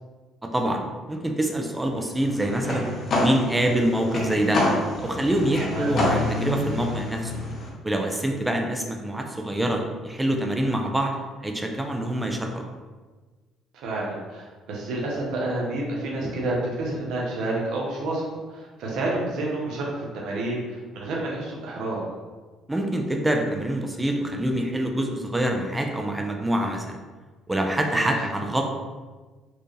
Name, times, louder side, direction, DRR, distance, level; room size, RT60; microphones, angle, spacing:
voice 1, 1.1-2.9 3.2-4.6 5.0-7.3 7.8-11.1 11.4-12.6 22.7-27.0 27.5-28.6, right 1 dB, 10° right, 2 dB, 0.6 m, -25 dB
sound 1, 2.2-7.7, left 2 dB, 55° left, 1.0 m, -27 dB
voice 2, 13.7-19.9 20.1-22.0 27.9-28.1, right 2 dB, 75° right, -3 dB, 1.0 m, -29 dB
4.5 x 2.4 x 3.3 m, 1.3 s
cardioid pair, 85°, 0 cm